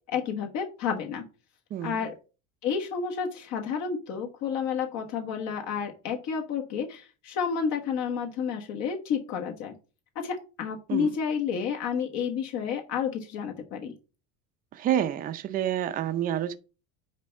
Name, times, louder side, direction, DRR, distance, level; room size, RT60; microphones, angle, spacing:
voice 1, 0.1-1.2 1.8-2.1 2.6-9.7 10.1-13.9, left 7 dB, 55° left, 1.3 m, -30 dB
voice 2, 14.7-16.6, right 11 dB, 25° right, 0.5 m, -28 dB
9.6 x 3.4 x 5.5 m
cardioid pair, 165°, 34 cm